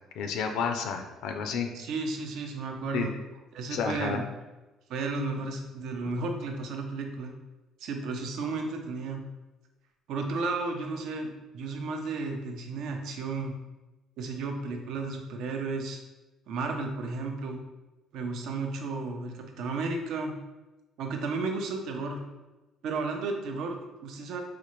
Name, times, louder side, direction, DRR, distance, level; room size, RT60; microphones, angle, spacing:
voice 1, 0.2-1.7 2.9-3.1 3.7-4.2, left 6 dB, 70° left, 5 dB, 0.4 m, -30 dB
voice 2, 1.7-3.1 3.5-4.3 4.9-7.3 7.8-9.2 10.1-13.6 14.2-16.0 16.5-17.6 18.1-20.4 21.0-22.2 22.8-24.4, right 3 dB, 65° right, 3 dB, 0.5 m, -33 dB
4.1 x 2.4 x 3.0 m, 1.1 s
cardioid pair, 155°, 0 cm